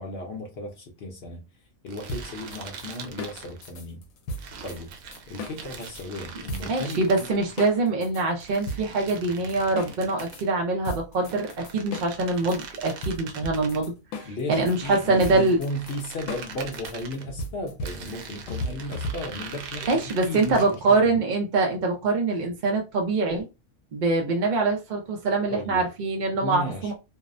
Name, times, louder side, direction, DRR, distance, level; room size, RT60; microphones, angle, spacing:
voice 1, 0.0-1.4 1.8-4.0 4.6-4.9 5.3-7.3 14.2-21.2 25.5-25.9 26.4-26.9, left 1 dB, 60° left, 0.7 m, -35 dB
sound 1, 1.9-3.8 4.4-7.7 8.4-10.5 11.2-13.8 14.5-17.2 17.8-20.8, right 6 dB, 85° right, 1.0 m, -42 dB
sound 2, 2.1-6.0 6.5-7.2 7.6-10.4 10.8-19.5, equal, 75° left, 1.0 m, -36 dB
voice 2, 6.6-15.6 19.9-23.4 23.9-26.9, right 3 dB, 70° right, 0.4 m, -24 dB
2.6 x 2.0 x 2.4 m
omnidirectional pair, 1.4 m